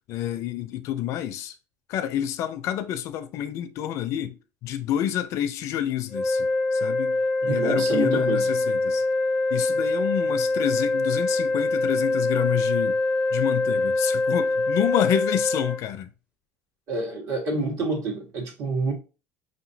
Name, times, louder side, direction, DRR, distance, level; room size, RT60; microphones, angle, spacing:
voice 1, 0.1-1.5 1.9-6.5 6.7-7.2 7.4-9.0 9.5-13.0 13.3-16.1, left 11 dB, 50° left, 0.4 m, -28 dB
sound 1, 6.1-15.8, left 2 dB, 15° right, 0.7 m, -24 dB
voice 2, 7.5-8.4 16.9-18.9, right 3 dB, 55° right, 1.4 m, -28 dB
5.2 x 2.9 x 2.6 m
cardioid pair, 150°, 6 cm